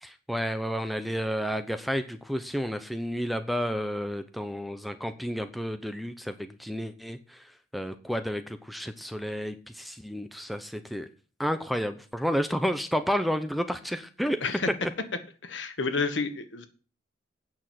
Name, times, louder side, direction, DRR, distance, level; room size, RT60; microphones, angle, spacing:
voice 1, 0.0-7.5 7.7-11.1 11.4-14.4 14.8-14.9, equal, ahead, 9 dB, 0.7 m, -31 dB
voice 2, 15.4-16.7, left 4 dB, 70° left, 9 dB, 1.5 m, -30 dB
9.0 x 6.3 x 7.6 m, 0.38 s
head